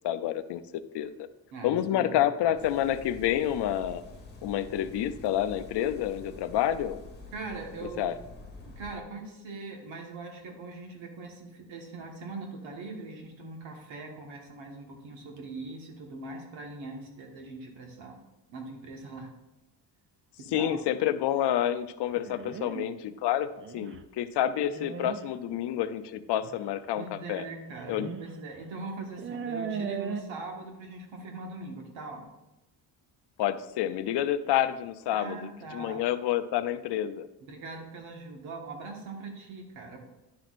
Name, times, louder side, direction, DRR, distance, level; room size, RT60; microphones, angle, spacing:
voice 1, 0.0-0.6 0.9-1.3 1.6-4.0 4.4-7.0 8.0-8.1 20.5-23.5 23.7-27.5 27.9-28.1 33.4-37.3, left 11 dB, 65° left, 12 dB, 0.5 m, -28 dB
voice 2, 1.5-2.3 7.3-8.1 8.8-18.2 18.5-19.3 20.4-20.8 27.0-32.2 35.1-36.0 37.4-40.0, right 3 dB, 85° right, 2 dB, 1.5 m, -41 dB
sound 1, 2.6-9.0, left 3 dB, 20° left, 1.3 m, -47 dB
sound 2, 22.2-22.9 23.6-24.0 24.6-25.2 26.4-26.5 27.7-28.3 28.6-28.7 29.2-30.2, right 7 dB, 30° right, 0.4 m, -37 dB
10.5 x 6.1 x 2.5 m, 0.98 s
cardioid pair, 140°, 45 cm